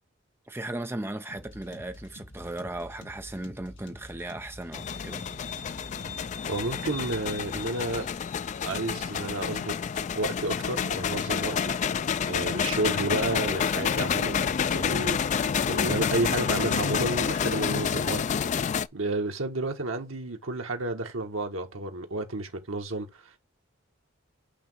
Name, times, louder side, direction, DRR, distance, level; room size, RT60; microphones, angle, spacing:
voice 1, 0.5-5.2, right 1 dB, 10° right, 0.7 m, -36 dB
sound 1, 1.3-8.2, left 1 dB, 65° left, 2.2 m, -47 dB
sound 2, 4.7-18.9, left 7 dB, 35° left, 0.3 m, -29 dB
voice 2, 6.5-8.1 8.6-9.8 10.1-11.7 12.3-18.6 18.9-23.4, right 2 dB, 85° right, 1.5 m, -31 dB
8.4 x 3.1 x 5.6 m
head